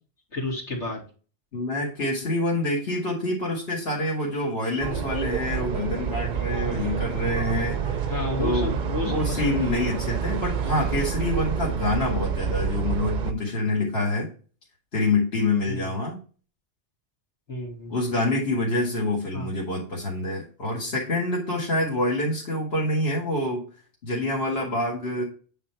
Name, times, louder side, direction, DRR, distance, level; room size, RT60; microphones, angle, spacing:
voice 1, 0.3-1.1 8.1-10.0 12.0-12.2 15.7-15.9 17.5-18.0 19.3-19.5, left 2 dB, 70° left, -3 dB, 2.8 m, -31 dB
voice 2, 1.5-8.0 8.4-8.7 9.0-14.3 14.9-16.2 17.9-23.6 24.0-25.2, left 2 dB, 55° left, -4 dB, 2.2 m, -26 dB
sound 1, 4.8-13.3, right 8 dB, 50° right, 0.6 m, -28 dB
8.9 x 3.7 x 4.4 m, 0.37 s
omnidirectional pair, 1.2 m